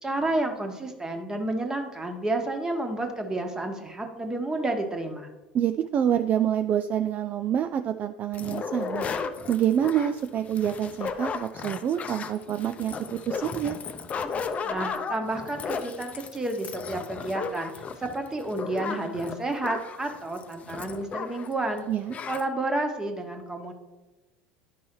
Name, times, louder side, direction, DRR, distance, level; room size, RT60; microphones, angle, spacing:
voice 1, 0.0-5.3 14.6-17.7 18.0-21.9 22.3-23.7, right 2 dB, 15° right, 5 dB, 1.3 m, -30 dB
voice 2, 5.5-9.1 9.5-13.8 21.9-22.1, right 9 dB, 40° right, 9 dB, 0.4 m, -27 dB
sound 1, 8.3-21.5 21.8-21.9 22.1-22.4, left 5 dB, 30° left, 0.7 m, -34 dB
10.5 x 5.3 x 3.1 m, 1.1 s
figure-of-eight pair, 70°, 4 cm